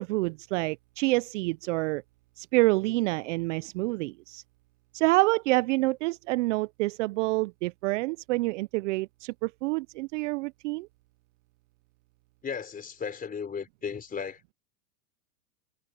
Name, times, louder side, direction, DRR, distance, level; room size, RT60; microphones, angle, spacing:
voice 1, 0.0-2.0 2.4-4.4 4.9-10.9, right 22 dB, 50° right, 0.5 m, -27 dB
voice 2, 12.4-14.4, left 6 dB, 20° left, 4.2 m, -35 dB
hypercardioid pair, 130°, 47 cm